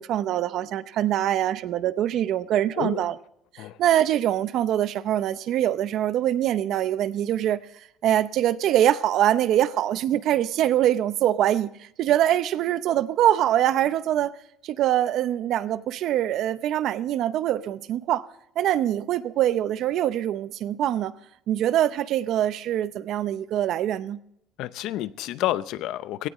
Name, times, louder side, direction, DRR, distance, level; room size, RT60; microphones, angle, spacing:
voice 1, 0.0-3.2 3.8-7.6 8.0-11.7 12.0-14.3 14.6-18.3 18.6-21.1 21.5-24.2, right 12 dB, 55° right, 0.7 m, -23 dB
voice 2, 24.6-26.3, left 14 dB, 65° left, 0.6 m, -29 dB
17.5 x 17.0 x 3.1 m
cardioid pair, 135°, 0 cm